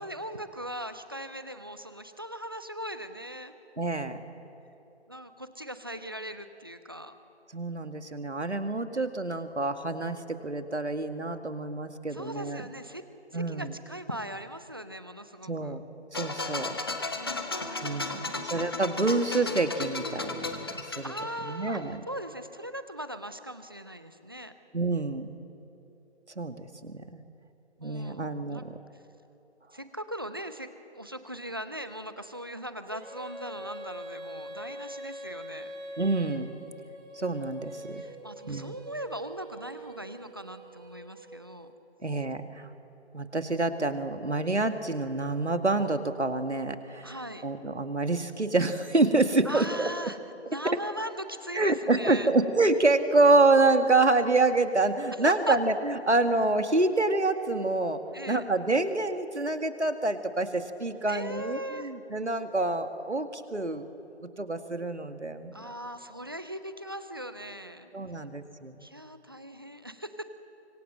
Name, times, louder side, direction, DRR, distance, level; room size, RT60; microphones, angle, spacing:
voice 1, 0.0-3.5 5.1-7.1 12.1-13.0 13.3-15.8 17.1-18.5 21.0-21.8 22.1-24.5 27.8-28.6 29.7-30.7 30.9-35.7 38.0-41.7 47.0-47.5 49.4-52.3 55.2-55.6 58.1-58.4 61.1-61.9 65.5-67.9 68.8-70.3, equal, 20° right, 10 dB, 0.7 m, -39 dB
voice 2, 3.8-4.3 7.5-12.7 13.3-13.7 15.5-15.8 16.1-16.8 17.8-21.1 21.4-22.0 24.7-25.3 26.4-27.2 27.8-28.8 36.0-36.5 37.1-38.0 38.5-38.7 42.0-42.7 43.1-47.2 47.4-50.1 51.5-58.0 58.3-63.9 64.2-65.7 67.9-68.9, right 2 dB, 80° right, 7 dB, 2.1 m, -27 dB
sound 1, 16.1-21.9, left 3 dB, 20° left, 1.0 m, -35 dB
Female singing, 32.9-41.7, right 1 dB, 45° right, 3.7 m, -43 dB
25.0 x 24.0 x 7.7 m, 2.9 s
figure-of-eight pair, 160°, 34 cm